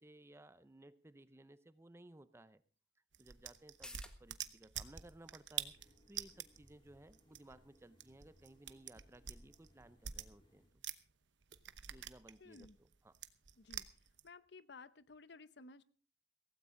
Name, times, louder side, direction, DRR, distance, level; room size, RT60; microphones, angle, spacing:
voice 1, 0.0-2.6 3.2-10.8 11.9-13.2, right 1 dB, 15° right, 14 dB, 0.6 m, -60 dB
sound 1, 3.1-11.1 11.4-14.3, right 10 dB, 80° right, 1.0 m, -47 dB
sound 2, 3.6-10.8 11.1-11.2, left 1 dB, 5° left, 1.4 m, -63 dB
sound 3, 5.6-10.7, equal, 25° left, 2.2 m, -70 dB
voice 2, 12.4-12.8 13.6-13.9 14.2-15.8, left 3 dB, 65° left, 15 dB, 0.8 m, -56 dB
16.5 x 15.5 x 3.8 m, 0.40 s
head